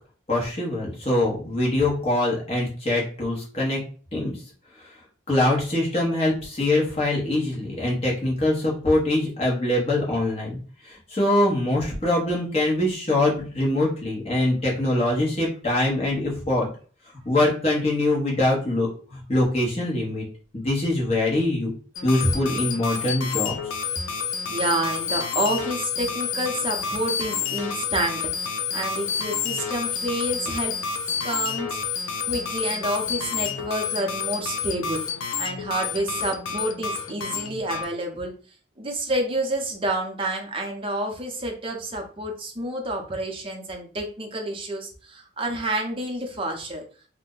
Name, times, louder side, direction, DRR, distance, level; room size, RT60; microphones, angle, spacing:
voice 1, 0.3-3.8 4.1-4.4 5.3-10.6 10.8-16.7 17.2-20.2 20.5-21.7 22.0-23.5, left 1 dB, 30° left, -4 dB, 1.0 m, -23 dB
sound 1, 22.0-37.9, left 6 dB, 90° left, 0.5 m, -29 dB
voice 2, 24.5-30.8 31.2-31.8 32.3-35.0 35.4-38.3 38.8-46.8, right 1 dB, 25° right, 2 dB, 0.6 m, -29 dB
2.5 x 2.1 x 3.7 m, 0.40 s
head